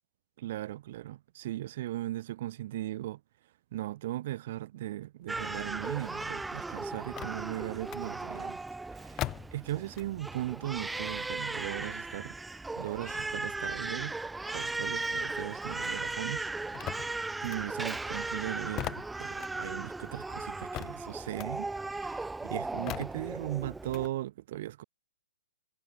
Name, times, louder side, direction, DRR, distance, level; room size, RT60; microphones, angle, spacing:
voice 1, 0.4-3.2 3.7-8.6 8.9-12.4 12.8-14.1 14.5-17.0 17.4-24.8, right 14 dB, 45° right, 2.9 m, -38 dB
sound 1, 5.2-10.4 10.7-15.6 15.9-24.1, left 15 dB, 25° left, 7.6 m, -44 dB
Crying sobbing, 5.3-24.1, right 3 dB, 5° right, 2.2 m, -37 dB
figure-of-eight pair, 120°, 0 cm